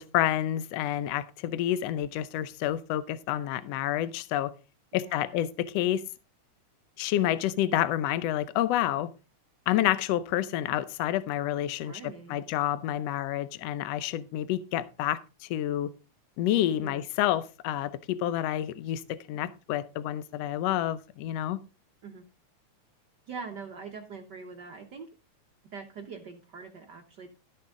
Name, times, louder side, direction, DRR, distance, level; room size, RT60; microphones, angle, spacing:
voice 1, 0.0-4.5 4.9-6.0 7.0-9.1 9.7-11.9 12.3-15.9 16.4-21.6, left 12 dB, 75° left, 1.6 m, -29 dB
voice 2, 4.9-5.4 11.8-12.5 16.8-17.0 22.0-22.2 23.3-25.1 25.7-27.3, right 5 dB, 65° right, 1.0 m, -43 dB
13.0 x 7.2 x 3.7 m
omnidirectional pair, 3.4 m